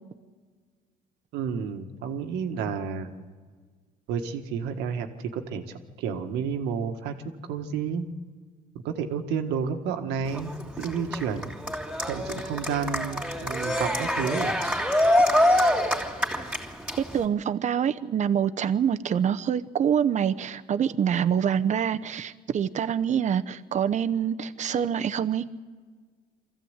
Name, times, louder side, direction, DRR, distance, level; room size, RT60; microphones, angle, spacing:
voice 1, 1.3-3.2 4.1-7.1 7.5-8.1 8.7-10.5 10.8-11.5 12.1-14.6, right 6 dB, 90° right, 6 dB, 1.7 m, -31 dB
Cheering, 10.2-17.2, left 1 dB, 5° right, 3.0 m, -25 dB
voice 2, 17.0-25.4, right 8 dB, 45° right, 11 dB, 0.9 m, -25 dB
24.0 x 15.0 x 8.1 m, 1.6 s
cardioid pair, 110°, 17 cm